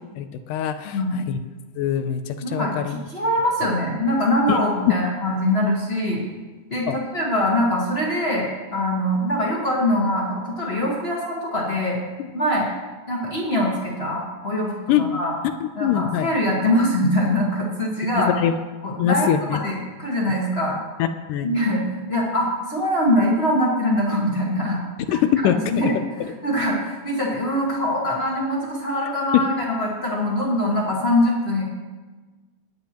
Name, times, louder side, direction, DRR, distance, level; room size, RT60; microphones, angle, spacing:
voice 1, 0.2-1.4 1.8-3.0 4.5-4.6 6.9-7.0 14.9-15.0 15.6-16.3 18.0-18.5 19.0-19.6 21.0-21.5 25.1-25.6, left 10 dB, 80° left, 9 dB, 2.1 m, -23 dB
voice 2, 0.8-1.2 2.4-6.2 6.7-12.0 12.3-12.7 13.1-15.3 15.8-18.3 18.8-20.8 21.4-21.8 22.1-24.8 25.1-26.0 26.2-31.6, left 1 dB, 45° left, -4 dB, 0.8 m, -23 dB
20.5 x 9.0 x 3.0 m, 1.3 s
omnidirectional pair, 3.9 m